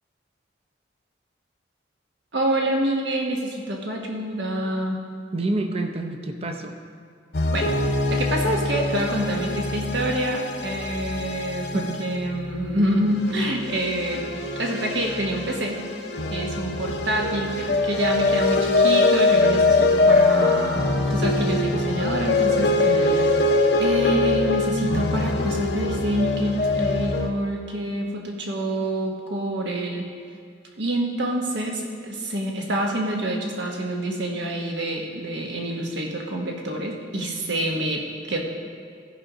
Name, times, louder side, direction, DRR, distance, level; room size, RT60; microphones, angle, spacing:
voice 1, 2.3-5.0 7.5-7.7 8.1-15.8 16.3-23.2 23.8-30.1 30.8-38.4, right 1 dB, 75° right, 1 dB, 1.3 m, -27 dB
voice 2, 5.3-6.8 11.6-12.0 22.8-23.2, right 2 dB, 30° right, 4 dB, 0.6 m, -28 dB
sound 1, 7.3-27.3, left 2 dB, 60° left, 0.7 m, -23 dB
13.0 x 5.4 x 5.0 m, 2.1 s
head